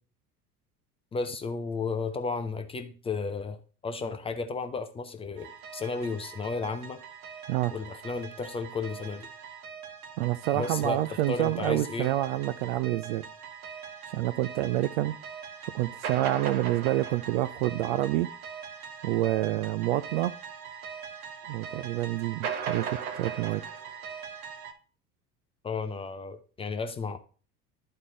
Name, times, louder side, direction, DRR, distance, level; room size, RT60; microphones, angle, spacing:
voice 1, 1.1-7.0 7.7-9.3 10.5-12.1 25.6-27.2, left 4 dB, 15° left, 0.5 m, -33 dB
sound 1, 5.4-24.7, right 7 dB, 65° right, 1.1 m, -40 dB
voice 2, 10.2-13.2 14.1-15.1 15.7-18.3 19.0-20.3 21.5-23.6, right 15 dB, 45° right, 0.4 m, -28 dB
11.0 x 4.4 x 3.7 m
figure-of-eight pair, 75°, 47 cm